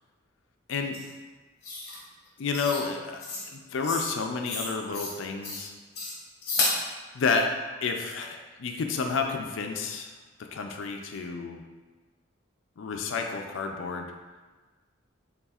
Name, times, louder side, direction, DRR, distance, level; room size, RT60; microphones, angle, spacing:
sound 1, 0.9-1.1 1.6-2.0 2.5-2.9 3.2-3.5 3.8-4.1 4.4-5.1 5.4-5.6 5.9-6.8, left 2 dB, 50° left, 0.9 m, -31 dB
voice 1, 2.4-5.7 7.1-7.5 7.8-10.1 10.5-11.6 12.8-14.1, left 4 dB, 80° left, 3 dB, 0.4 m, -30 dB
6.8 x 2.4 x 2.4 m, 1.3 s
head